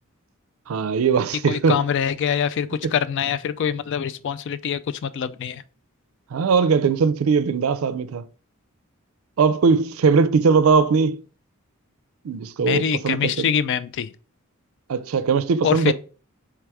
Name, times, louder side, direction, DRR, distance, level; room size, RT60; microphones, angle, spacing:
voice 1, 0.7-1.8 2.8-2.9 6.3-8.2 9.4-11.2 12.2-13.5 14.9-15.9, right 5 dB, 75° right, 0.4 m, -20 dB
voice 2, 1.4-5.6 12.6-14.1 15.6-15.9, left 8 dB, 60° left, 0.3 m, -24 dB
3.4 x 3.3 x 4.7 m
head